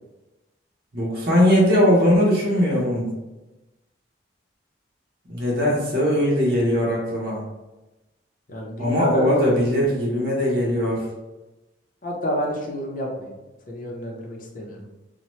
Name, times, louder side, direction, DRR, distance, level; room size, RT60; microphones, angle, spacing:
voice 1, 0.9-3.1 5.3-7.4 8.8-11.1, equal, 55° right, -5 dB, 0.9 m, -20 dB
voice 2, 8.5-9.3 12.0-13.4 13.7-14.9, equal, 45° left, -1 dB, 0.6 m, -29 dB
2.8 x 2.1 x 3.1 m, 1.1 s
head